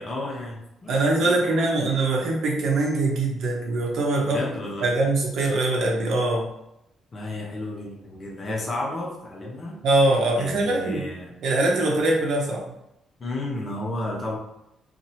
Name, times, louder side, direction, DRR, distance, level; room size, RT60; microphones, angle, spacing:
voice 1, 0.0-1.7 4.2-4.9 7.1-9.8 10.4-11.3 13.2-14.4, left 1 dB, 40° left, -1 dB, 0.9 m, -32 dB
voice 2, 0.9-4.4 4.8-6.5 9.8-11.0 11.4-12.7, right 2 dB, 70° right, -1 dB, 0.8 m, -22 dB
2.9 x 2.6 x 2.7 m, 0.84 s
cardioid pair, 90°, 0 cm